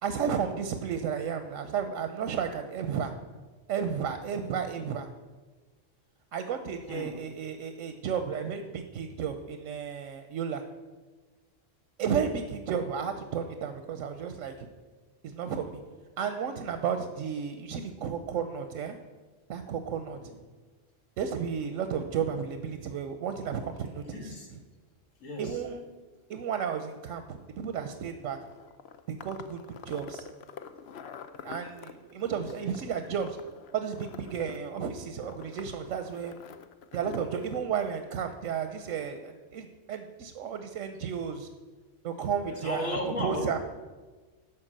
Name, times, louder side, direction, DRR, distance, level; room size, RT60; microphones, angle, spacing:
voice 1, 0.0-3.1 3.7-5.1 6.3-10.6 12.0-14.7 15.2-15.8 16.2-19.0 19.5-20.2 21.2-24.3 25.4-25.8 26.3-28.4 29.1-30.3 31.4-33.4 33.7-36.3 36.9-41.5 42.0-43.6, right 7 dB, 85° right, 8 dB, 1.1 m, -33 dB
voice 2, 6.9-7.3 20.1-20.4 24.1-24.5 25.2-25.6 32.6-32.8 42.5-43.6, left 1 dB, 80° left, 1 dB, 2.2 m, -36 dB
sound 1, 28.2-37.6, left 7 dB, 60° left, 0.9 m, -47 dB
12.5 x 4.7 x 7.4 m, 1.3 s
omnidirectional pair, 1.3 m